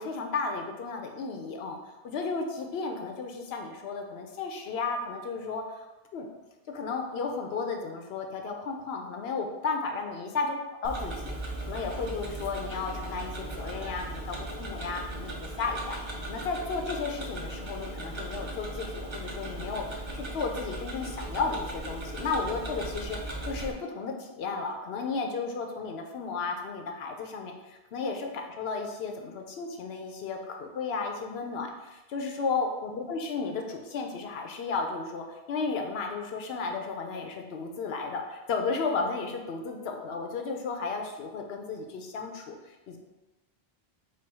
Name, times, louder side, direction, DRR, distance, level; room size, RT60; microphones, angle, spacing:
voice 1, 0.0-1.8 2.0-5.9 6.1-6.3 6.7-10.5 10.8-11.4 11.6-16.0 16.3-43.0, left 4 dB, 75° left, 3 dB, 0.8 m, -34 dB
Tick-tock, 10.8-23.7, right 1 dB, 35° right, 0.6 m, -38 dB
4.4 x 2.3 x 4.6 m, 1.1 s
omnidirectional pair, 1.1 m